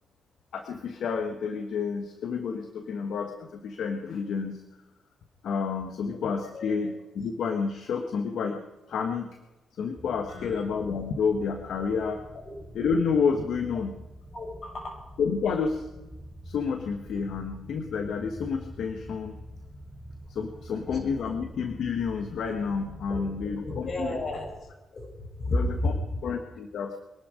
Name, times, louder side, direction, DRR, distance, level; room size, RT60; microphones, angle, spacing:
voice 1, 0.5-4.6 5.4-8.6 8.9-9.3 9.8-12.2 12.7-14.0 15.2-15.9 16.4-19.3 20.3-24.1 25.5-25.9 26.2-27.0, left 5 dB, 75° left, 6 dB, 1.4 m, -30 dB
sound 1, 9.9-24.5, equal, 15° left, 4.3 m, -45 dB
voice 2, 10.3-10.6 12.4-12.5 14.3-15.0 20.9-21.0 23.1-23.2 23.6-24.5 24.9-25.6 25.8-26.2, left 2 dB, 55° left, 0 dB, 7.6 m, -32 dB
23.5 x 12.0 x 5.0 m, 1.1 s
supercardioid pair, 60°, 0 cm